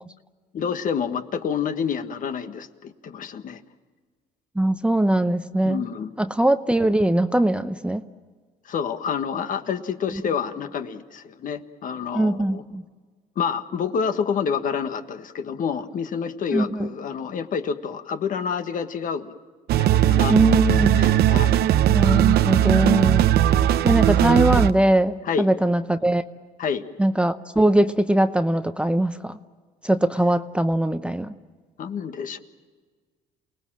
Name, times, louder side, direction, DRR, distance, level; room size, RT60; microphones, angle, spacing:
voice 1, 0.5-3.6 5.6-6.1 8.6-12.6 13.3-19.3 19.8-21.6 25.2-25.5 26.6-26.8 31.8-32.4, left 6 dB, 55° left, 8 dB, 1.6 m, -28 dB
voice 2, 4.6-5.8 6.2-8.0 12.1-12.8 16.5-16.9 20.3-21.0 21.9-23.3 23.8-26.2 27.0-29.4 29.8-31.3, right 1 dB, 5° right, 9 dB, 0.8 m, -21 dB
sound 1, 19.7-24.7, right 11 dB, 70° right, 0.8 m, -18 dB
29.0 x 19.5 x 7.5 m, 1.5 s
cardioid pair, 110°, 17 cm